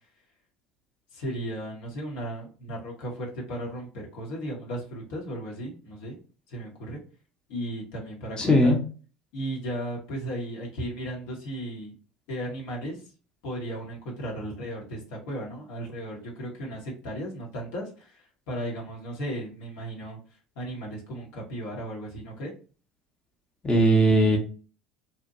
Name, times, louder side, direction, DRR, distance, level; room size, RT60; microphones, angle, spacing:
voice 1, 1.1-6.2 6.5-7.0 7.5-8.7 9.3-11.9 12.3-13.0 13.4-20.2 20.6-22.5, right 1 dB, 65° left, -2 dB, 0.9 m, -35 dB
voice 2, 8.4-8.8 23.6-24.4, right 1 dB, 20° left, 1 dB, 0.8 m, -19 dB
2.7 x 2.1 x 2.6 m, 0.37 s
figure-of-eight pair, 70°, 4 cm